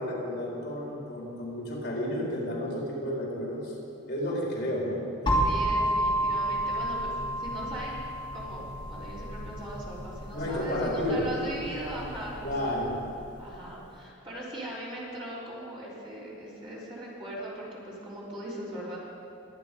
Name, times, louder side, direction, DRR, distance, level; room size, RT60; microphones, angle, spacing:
voice 1, 0.0-3.7 4.1-5.4 10.3-11.3 12.4-12.9, equal, 55° left, -4 dB, 4.0 m, -31 dB
sound 1, 5.3-13.1, right 1 dB, 25° left, 2.8 m, -31 dB
voice 2, 5.4-8.0 8.3-12.8 13.4-19.0, right 1 dB, 25° right, -7 dB, 3.9 m, -39 dB
22.5 x 9.5 x 5.2 m, 3.0 s
head